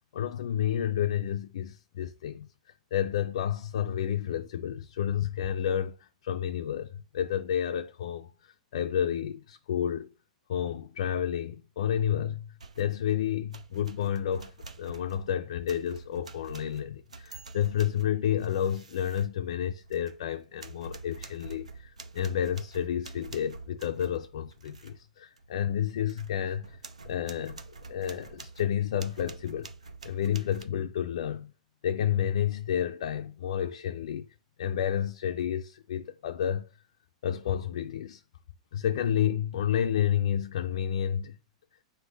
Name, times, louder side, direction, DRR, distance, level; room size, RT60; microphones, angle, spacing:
voice 1, 0.1-2.5 2.9-5.9 6.2-6.9 7.1-10.1 10.5-12.5 12.8-14.5 14.8-26.8 27.1-27.6 27.9-29.7 30.0-31.5 31.8-34.3 34.6-36.7 37.2-38.2 38.7-41.4, left 9 dB, 60° left, 0.3 m, -30 dB
sound 1, 12.6-13.1 13.5-20.3 20.6-25.0 25.4-25.5 25.9-30.6, right 3 dB, 80° right, 0.5 m, -47 dB
3.6 x 2.8 x 4.4 m
figure-of-eight pair, 95°, 4 cm